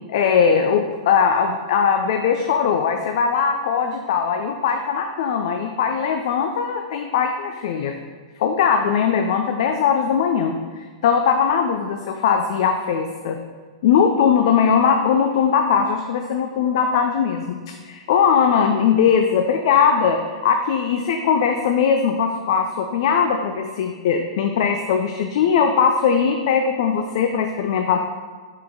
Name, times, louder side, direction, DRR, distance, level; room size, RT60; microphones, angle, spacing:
voice 1, 0.1-7.9 8.4-13.4 13.8-17.4 17.9-28.0, left 7 dB, 60° left, 5 dB, 0.4 m, -20 dB
5.4 x 5.2 x 3.8 m, 1.5 s
hypercardioid pair, 105°, 3 cm